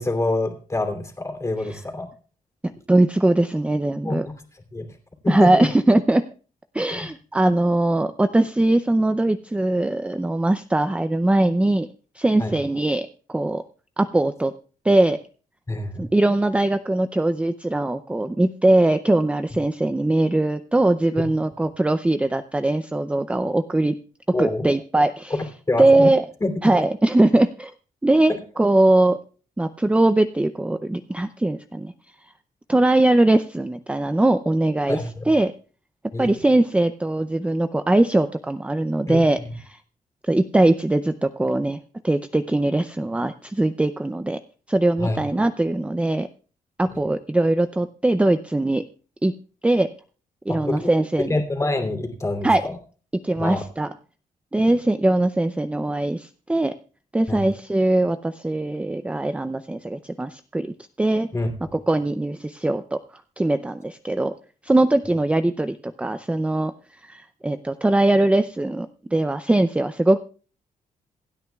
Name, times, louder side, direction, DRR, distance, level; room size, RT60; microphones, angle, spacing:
voice 1, 0.0-2.1 4.0-4.2 4.7-4.9 5.2-5.7 6.9-7.1 12.4-12.5 15.7-16.1 24.3-24.7 25.3-26.1 26.4-26.5 28.3-28.4 34.9-35.2 36.1-36.5 39.1-39.5 45.0-45.2 50.5-50.9 51.2-52.8 53.3-53.6 57.3-57.5 61.3-61.5, left 2 dB, 20° left, 4 dB, 2.9 m, -26 dB
voice 2, 2.9-4.3 5.3-6.3 6.7-11.9 12.1-13.6 14.0-14.5 14.8-15.2 16.0-23.9 24.4-25.4 25.8-26.2 26.6-27.7 28.0-29.2 29.6-31.9 32.7-35.5 36.2-39.4 39.7-39.8 40.2-44.4 44.7-46.3 46.8-48.8 49.2-49.3 49.6-49.9 50.5-51.3 52.4-52.6 53.2-53.9 54.5-56.7 57.1-61.3 61.7-64.3 64.6-70.2, right 2 dB, 10° right, 10 dB, 0.5 m, -21 dB
27.0 x 9.2 x 2.3 m, 0.39 s
cardioid pair, 105°, 14 cm